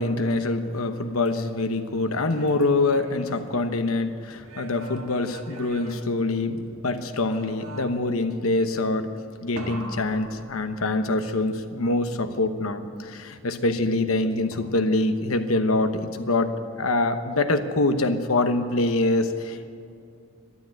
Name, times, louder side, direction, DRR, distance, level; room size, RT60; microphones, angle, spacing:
voice 1, 0.0-9.1 9.4-19.7, left 2 dB, 90° left, 8 dB, 1.1 m, -25 dB
sound 1, 2.1-4.0 4.4-6.8 7.3-8.2 9.6-11.2 14.5-15.2, right 2 dB, 80° right, 1.8 m, -43 dB
13.0 x 11.5 x 7.8 m, 2.5 s
head